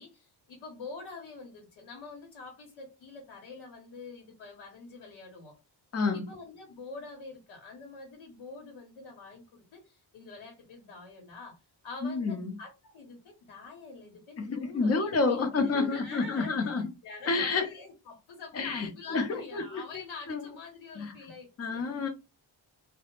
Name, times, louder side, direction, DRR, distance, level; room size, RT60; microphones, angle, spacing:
voice 1, 0.0-5.6 6.1-16.5 17.0-21.8, left 4 dB, 75° left, 0.9 m, -46 dB
voice 2, 12.0-12.5 14.4-16.9 17.3-17.7 18.5-19.8 20.3-20.5 21.0-21.1 21.6-22.1, left 4 dB, 35° left, 0.6 m, -29 dB
2.1 x 2.1 x 2.9 m
cardioid pair, 90°, 46 cm